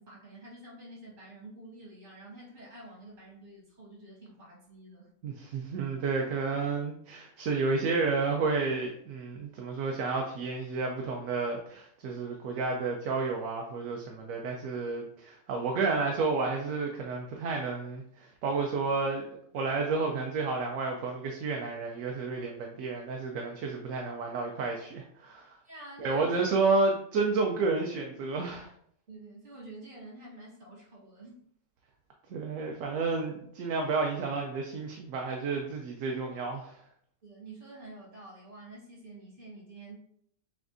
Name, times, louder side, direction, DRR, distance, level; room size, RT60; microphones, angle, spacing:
voice 1, 0.0-5.1 25.6-26.4 29.1-31.4 37.2-40.0, right 2 dB, 55° right, -5 dB, 2.1 m, -48 dB
voice 2, 5.2-25.6 26.0-28.7 32.3-36.8, right 4 dB, 75° right, 1 dB, 1.0 m, -31 dB
6.9 x 2.4 x 2.6 m, 0.68 s
omnidirectional pair, 1.4 m